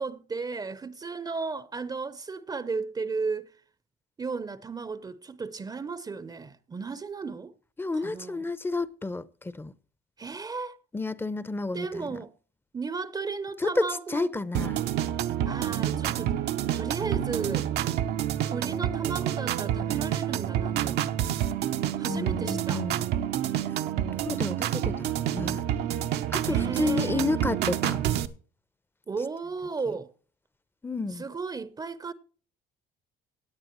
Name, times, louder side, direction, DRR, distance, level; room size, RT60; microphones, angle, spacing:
voice 1, 0.0-3.5 4.2-7.5 7.9-8.5 10.2-10.8 11.7-12.3 12.7-14.3 15.5-16.4 16.7-17.7 18.4-21.1 22.0-22.9 26.4-27.3 29.1-30.1 31.2-32.1, right 4 dB, 25° right, 0.6 m, -34 dB
voice 2, 7.8-9.7 10.9-12.2 13.6-14.9 22.1-23.1 23.6-23.8 24.1-25.7 26.3-28.0 29.9-30.0 30.8-31.2, left 3 dB, 15° left, 0.7 m, -31 dB
sound 1, 14.5-28.3, right 11 dB, 80° right, 0.8 m, -28 dB
17.0 x 9.0 x 3.0 m
cardioid pair, 110°, 17 cm